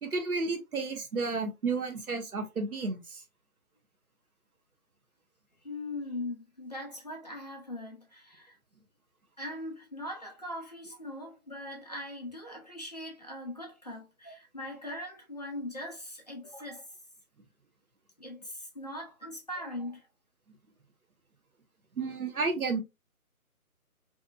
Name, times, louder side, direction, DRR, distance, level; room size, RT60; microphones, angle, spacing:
voice 1, 0.0-3.2 22.0-22.8, right 4 dB, 75° right, 0.9 m, -32 dB
voice 2, 5.6-8.6 9.4-16.8 18.2-20.0, left 1 dB, 30° left, 0.5 m, -40 dB
2.8 x 2.4 x 2.3 m
figure-of-eight pair, 145°, 44 cm